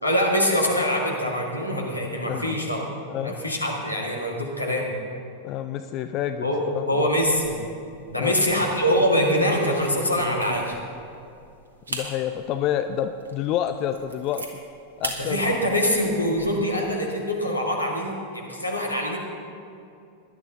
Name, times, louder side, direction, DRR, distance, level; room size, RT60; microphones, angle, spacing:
voice 1, 0.0-2.9 3.2-5.0 6.4-7.6 8.1-10.6 15.2-19.2, equal, 85° left, 0 dB, 1.9 m, -24 dB
voice 2, 5.4-6.5 6.8-7.1 8.2-8.3 11.9-14.4 15.0-15.4, left 10 dB, 40° left, 9 dB, 0.4 m, -28 dB
sound 1, 7.0-7.7 8.1-8.3 8.9-10.9 11.4-11.5 11.9-12.1 12.6-12.7 13.2-13.3 13.7-14.5 15.0-15.2 15.6-16.5, right 1 dB, 75° right, 1.5 m, -33 dB
18.0 x 11.0 x 3.8 m, 2.5 s
figure-of-eight pair, 90°, 0 cm